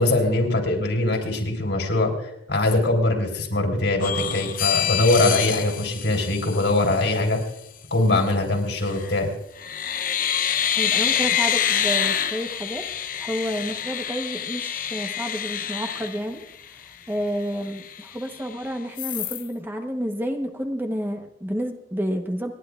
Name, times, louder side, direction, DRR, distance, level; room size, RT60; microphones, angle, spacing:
voice 1, 0.0-7.4 7.9-9.3, left 2 dB, 75° left, 2 dB, 3.9 m, -22 dB
sound 1, 4.0-7.0 8.8-9.2 9.6-16.8 17.3-17.4 17.7-18.5 19.0-19.5, left 9 dB, 50° left, 0.7 m, -27 dB
voice 2, 10.8-12.9 13.1-16.4 17.1-22.5, equal, 10° right, 4 dB, 1.0 m, -30 dB
29.5 x 11.0 x 2.4 m, 0.82 s
head